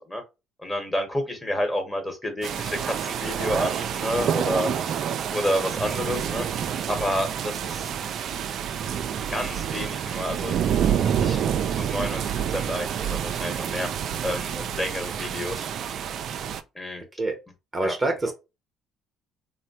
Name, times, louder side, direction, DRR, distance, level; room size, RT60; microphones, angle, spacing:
voice 1, 0.6-4.7 5.3-7.9 9.3-10.6 11.2-13.9 14.2-15.6 16.7-17.0 17.8-17.9 18.2-18.3, left 1 dB, 15° left, 1.2 m, -30 dB
sound 1, 2.4-16.6, right 8 dB, 60° right, 0.3 m, -28 dB
voice 2, 17.7-18.3, right 2 dB, 25° right, 0.8 m, -26 dB
3.1 x 2.1 x 2.8 m
supercardioid pair, 65°, 0 cm